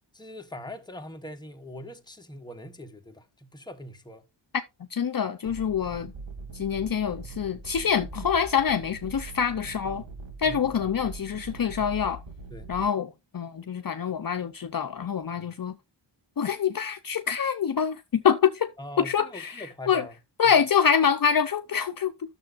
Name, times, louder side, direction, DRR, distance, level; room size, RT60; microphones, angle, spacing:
voice 1, 0.1-4.3 9.7-9.8 10.4-10.9 12.5-12.7 18.8-20.2 20.4-20.6, equal, 10° left, 1.1 m, -42 dB
voice 2, 4.8-6.1 6.5-10.0 10.4-12.2 12.7-15.8 16.4-18.7 19.0-20.0 20.4-22.1, left 7 dB, 50° left, 0.6 m, -25 dB
sound 1, 5.4-12.8, right 3 dB, 75° right, 2.0 m, -42 dB
12.0 x 6.8 x 2.5 m
wide cardioid pair, 100°, 46 cm